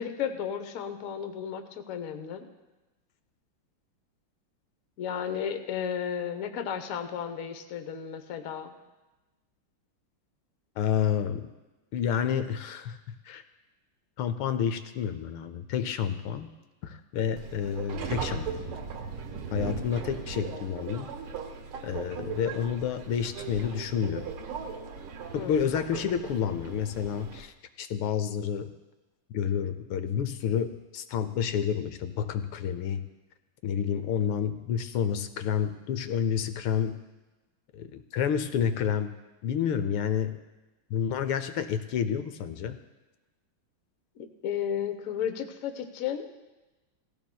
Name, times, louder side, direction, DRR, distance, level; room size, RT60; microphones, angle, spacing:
voice 1, 0.0-2.5 5.0-8.7 25.3-25.7 44.2-46.3, left 8 dB, 55° left, 6 dB, 1.0 m, -33 dB
voice 2, 10.8-11.5 11.9-13.4 14.2-16.5 16.8-18.8 19.5-21.1 21.8-24.3 25.3-28.7 29.3-33.0 33.6-37.0 37.7-39.1 39.4-40.4 40.9-42.8, left 8 dB, 80° left, 9 dB, 1.5 m, -29 dB
Subway metro underground, 17.4-27.4, right 6 dB, 85° right, 2.0 m, -38 dB
18.0 x 16.0 x 2.3 m, 1.1 s
omnidirectional pair, 2.4 m